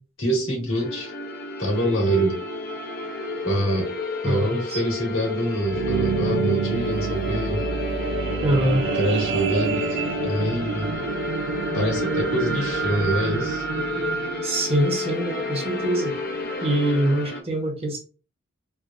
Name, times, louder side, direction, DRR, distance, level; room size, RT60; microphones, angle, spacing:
voice 1, 0.2-1.1 1.6-2.4 3.4-3.9 4.2-7.7 8.9-10.9 11.7-13.6, right 1 dB, 75° left, -1 dB, 1.6 m, -25 dB
sound 1, 0.7-17.4, left 2 dB, 45° left, 0.6 m, -31 dB
voice 2, 4.2-4.8 8.4-8.9 14.4-16.2 16.6-18.0, right 1 dB, 30° right, 1 dB, 0.8 m, -24 dB
sound 2, 5.4-15.9 16.5-16.6, right 5 dB, 60° right, 0.4 m, -28 dB
3.3 x 2.4 x 2.3 m, 0.34 s
head